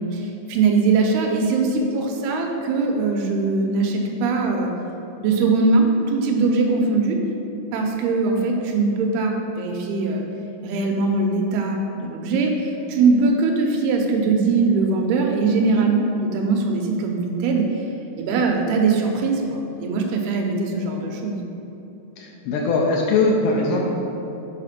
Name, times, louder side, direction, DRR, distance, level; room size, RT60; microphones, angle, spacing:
voice 1, 0.0-4.7 5.2-7.2 7.7-10.2 10.6-17.7 18.2-21.4, right 3 dB, 85° right, 2 dB, 2.8 m, -21 dB
voice 2, 22.2-23.9, left 3 dB, 85° left, -2 dB, 2.7 m, -21 dB
7.4 x 4.9 x 5.9 m, 3.0 s
omnidirectional pair, 4.4 m